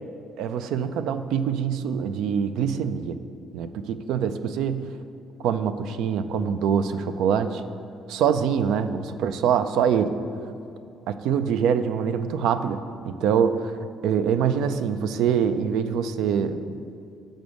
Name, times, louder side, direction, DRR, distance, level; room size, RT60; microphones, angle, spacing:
voice 1, 0.4-3.2 3.5-4.9 5.4-7.6 8.1-10.1 11.1-13.7 14.0-16.7, right 7 dB, 85° right, 11 dB, 0.4 m, -24 dB
6.9 x 5.2 x 6.2 m, 2.5 s
cardioid pair, 170°, 0 cm